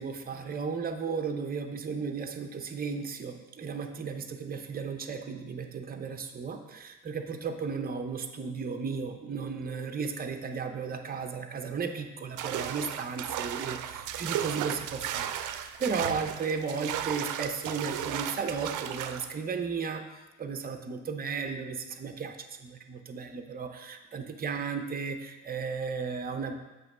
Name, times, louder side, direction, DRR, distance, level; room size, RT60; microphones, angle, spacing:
voice 1, 0.0-20.0 20.4-26.5, right 5 dB, 30° right, 5 dB, 0.7 m, -35 dB
sound 1, 12.4-19.3, right 10 dB, 85° right, 0.5 m, -35 dB
7.5 x 3.1 x 6.0 m, 1.1 s
cardioid pair, 90°, 30 cm